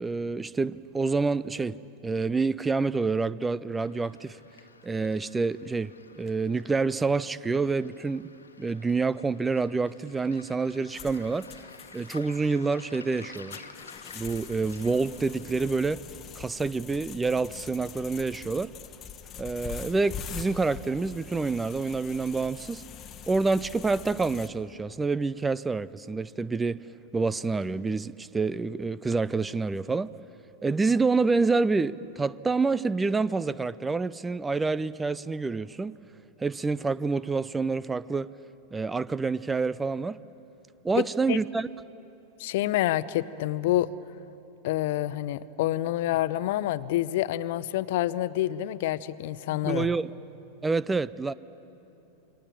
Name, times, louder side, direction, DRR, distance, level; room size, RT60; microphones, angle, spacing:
voice 1, 0.0-4.4 4.8-8.3 8.6-11.5 11.9-13.7 14.1-16.0 16.4-18.7 19.4-22.8 23.3-26.8 27.1-30.1 30.6-36.0 36.4-38.3 38.7-40.2 40.8-41.7 49.6-50.1 50.6-51.3, right 4 dB, 10° right, 0.5 m, -27 dB
Waves surf, 3.8-15.8, left 4 dB, 75° left, 1.4 m, -51 dB
sound 1, 10.9-24.5, left 7 dB, 30° left, 1.3 m, -43 dB
voice 2, 41.0-41.4 42.4-43.9 44.6-49.9, left 14 dB, 50° left, 0.7 m, -27 dB
28.5 x 23.5 x 8.8 m
figure-of-eight pair, 90°, 0 cm